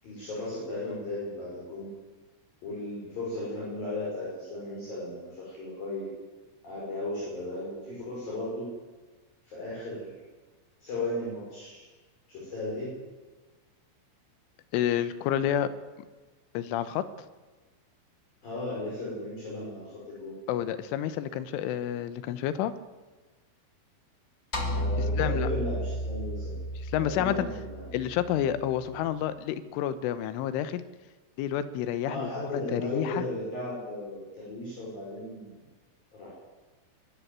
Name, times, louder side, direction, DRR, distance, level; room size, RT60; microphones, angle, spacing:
voice 1, 0.0-1.9 2.6-6.1 6.6-8.7 9.5-10.1 10.8-11.9 12.3-13.0 18.4-20.3 24.7-26.6 27.0-28.0 32.0-35.5 36.1-36.3, left 2 dB, 45° left, -6 dB, 7.2 m, -35 dB
voice 2, 14.7-15.7 16.5-17.1 20.5-22.7 25.2-25.5 26.9-27.5 27.9-30.8 31.4-33.2, left 10 dB, 80° left, 13 dB, 3.3 m, -29 dB
sound 1, 24.5-28.9, equal, 25° left, 1.4 m, -33 dB
23.0 x 12.5 x 9.4 m, 1.3 s
omnidirectional pair, 5.9 m